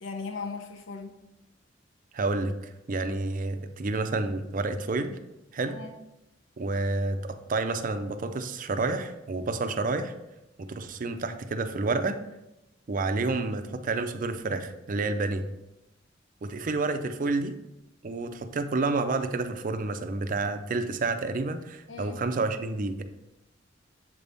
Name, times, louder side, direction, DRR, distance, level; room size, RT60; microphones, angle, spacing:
voice 1, 0.0-1.1 5.6-5.9 21.9-22.2, left 4 dB, 80° left, 5 dB, 0.6 m, -38 dB
voice 2, 2.1-2.5 2.9-5.1 5.5-5.8 6.6-10.1 10.6-12.2 12.9-15.4 16.4-17.5 18.0-23.0, right 3 dB, 45° right, 8 dB, 0.5 m, -29 dB
7.4 x 3.5 x 4.0 m, 0.92 s
head